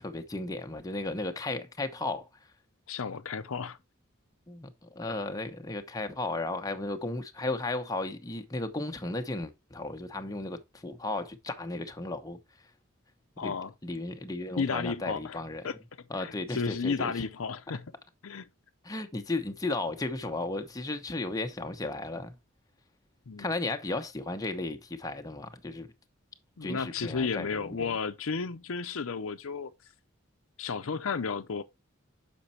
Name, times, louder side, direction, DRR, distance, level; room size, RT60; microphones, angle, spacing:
voice 1, 0.0-2.3 4.5-12.4 13.4-13.6 13.8-15.7 16.1-17.2 18.8-22.4 23.4-25.9 26.6-28.0, left 2 dB, 15° left, 0.9 m, -35 dB
voice 2, 2.9-3.8 13.4-13.7 14.6-15.8 16.2-17.9 18.2-18.5 23.3-23.5 26.6-29.7 30.6-31.6, left 5 dB, 75° left, 0.6 m, -33 dB
6.6 x 5.3 x 4.2 m
head